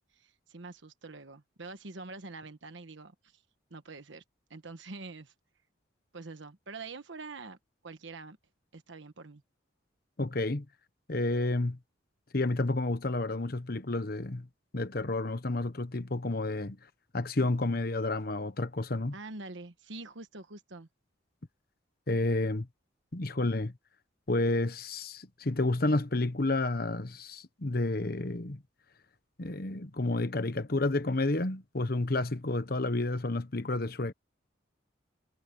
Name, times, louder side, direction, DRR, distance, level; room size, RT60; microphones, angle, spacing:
voice 1, 0.0-3.4 3.7-4.2 4.5-5.3 6.1-7.6 7.8-8.4 8.7-9.4 19.1-20.9, right 3 dB, 75° right, 1.2 m, -45 dB
voice 2, 10.2-10.6 11.1-11.8 12.3-14.5 14.7-16.8 17.1-19.1 22.1-22.7 23.1-23.7 24.3-28.6 29.4-34.1, left 2 dB, 50° left, 1.1 m, -30 dB
head